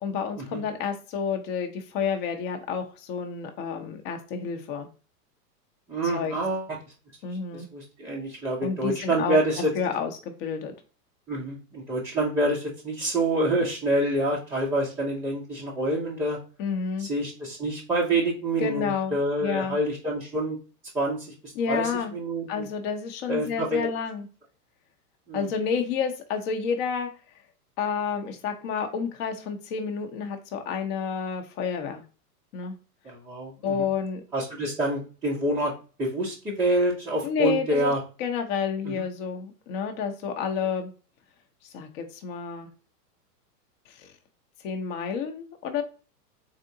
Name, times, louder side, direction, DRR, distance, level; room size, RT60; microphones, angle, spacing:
voice 1, 0.0-4.9 6.1-6.3 7.2-7.7 8.6-9.4 9.8-10.7 16.6-17.1 18.6-19.8 21.6-22.1 22.5-24.3 25.3-27.1 27.8-32.0 32.5-32.7 33.6-34.2 37.2-37.9 38.2-40.9 41.7-42.7 43.9-44.1 44.6-45.8, left 6 dB, 35° left, 5 dB, 0.7 m, -30 dB
voice 2, 5.9-6.7 7.5-9.7 11.3-16.4 17.0-20.6 20.9-21.3 21.7-22.6 23.3-23.9 25.3-25.5 33.0-33.9 34.3-35.7 36.0-38.0 38.8-39.0, right 1 dB, 5° right, -9 dB, 0.4 m, -27 dB
3.8 x 3.3 x 2.6 m, 0.35 s
hypercardioid pair, 125°, 48 cm